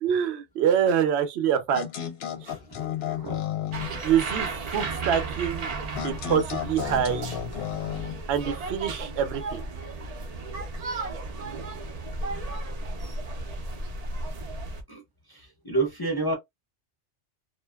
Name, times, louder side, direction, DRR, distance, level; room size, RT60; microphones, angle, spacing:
voice 1, 0.0-1.9 4.0-5.7 6.0-7.2 8.3-9.6, right 8 dB, 70° right, 0.8 m, -25 dB
sound 1, 1.7-4.0 5.9-8.2, left 10 dB, 70° left, 0.8 m, -33 dB
voice 2, 2.4-3.4 14.9-15.0 15.3-16.3, right 3 dB, 25° left, 0.6 m, -30 dB
sound 2, 3.7-14.8, right 3 dB, 50° right, 0.5 m, -34 dB
2.5 x 2.2 x 2.2 m
omnidirectional pair, 1.2 m